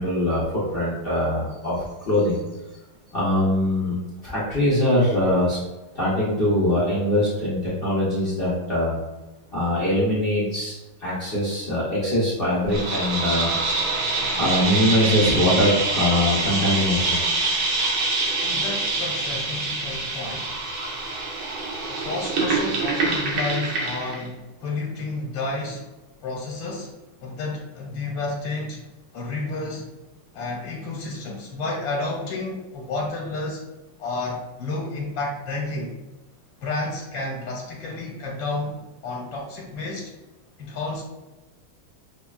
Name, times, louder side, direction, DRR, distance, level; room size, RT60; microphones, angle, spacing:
voice 1, 0.0-2.4 3.1-3.9 4.2-5.6 5.9-8.9 9.5-10.7 11.0-13.5 14.4-17.2, left 1 dB, 50° left, -8 dB, 0.7 m, -22 dB
sound 1, 12.7-24.2, right 3 dB, 90° right, 1.7 m, -25 dB
voice 2, 18.4-20.6 21.9-25.8 26.2-26.9 27.2-28.8 29.1-29.9 30.3-33.6 34.0-35.9 36.6-40.1 40.6-41.0, left 2 dB, 80° left, -3 dB, 1.7 m, -31 dB
6.2 x 2.2 x 2.4 m, 1.1 s
omnidirectional pair, 2.1 m